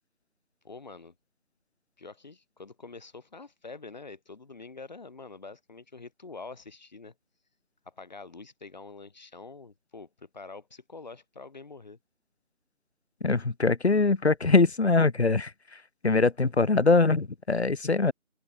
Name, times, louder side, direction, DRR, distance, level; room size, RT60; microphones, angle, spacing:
voice 1, 0.6-1.1 2.0-7.1 7.9-12.0, left 4 dB, 35° left, 7.3 m, -46 dB
voice 2, 13.2-15.5 16.0-18.1, left 3 dB, 55° left, 1.3 m, -22 dB
open air
figure-of-eight pair, 170°, 39 cm